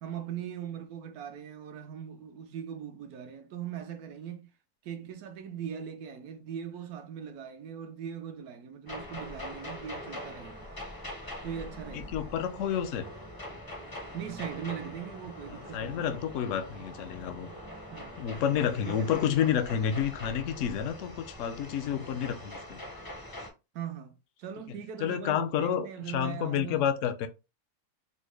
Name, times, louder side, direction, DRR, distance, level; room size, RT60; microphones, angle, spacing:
voice 1, 0.0-4.5 4.8-10.7 11.4-12.2 14.1-16.1 17.9-18.3 18.9-19.4 23.7-26.9, right 8 dB, 70° right, 1.1 m, -40 dB
sound 1, 8.9-23.5, left 1 dB, 30° left, 0.4 m, -43 dB
voice 2, 11.9-13.1 15.5-17.5 18.2-22.8 25.0-27.3, left 9 dB, 70° left, 0.8 m, -30 dB
4.0 x 2.1 x 3.1 m
omnidirectional pair, 1.7 m